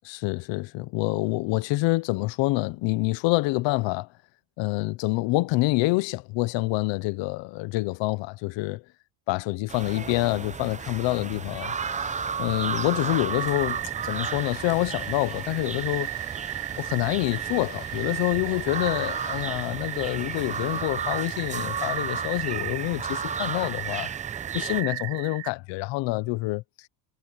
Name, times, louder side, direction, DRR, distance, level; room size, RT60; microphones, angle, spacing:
voice 1, 0.0-4.1 4.6-8.8 9.3-16.1 16.8-24.1 24.5-26.6, left 20 dB, 65° left, 1.0 m, -27 dB
sound 1, 9.7-24.8, right 5 dB, 15° right, 0.7 m, -33 dB
sound 2, 13.3-25.5, right 24 dB, 70° right, 0.8 m, -35 dB
sound 3, 14.0-20.8, left 21 dB, 85° left, 2.5 m, -52 dB
cardioid pair, 125°, 47 cm